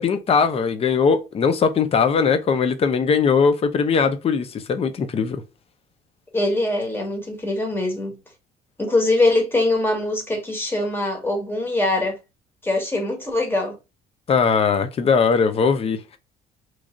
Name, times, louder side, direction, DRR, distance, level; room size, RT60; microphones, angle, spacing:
voice 1, 0.0-5.4 14.3-16.2, left 5 dB, 35° left, 0.6 m, -20 dB
voice 2, 6.3-8.2 8.8-12.2 12.6-13.8, left 2 dB, 15° left, 1.4 m, -22 dB
3.2 x 2.4 x 3.6 m
cardioid pair, 110°, 17 cm